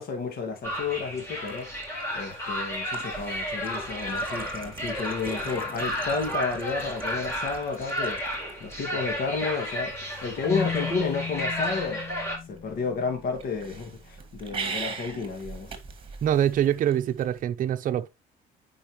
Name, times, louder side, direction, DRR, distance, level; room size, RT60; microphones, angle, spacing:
voice 1, 0.0-12.0 12.5-15.7, left 4 dB, 60° left, 2.0 m, -32 dB
sound 1, 0.6-12.4, equal, 15° left, 4.3 m, -33 dB
sound 2, 0.7-17.4, right 5 dB, 30° right, 1.9 m, -43 dB
Marimba xylophone, 10.4-13.4, left 7 dB, 80° left, 2.4 m, -35 dB
voice 2, 16.2-18.1, right 10 dB, 55° right, 0.7 m, -24 dB
8.6 x 5.3 x 3.0 m
cardioid pair, 110°, 17 cm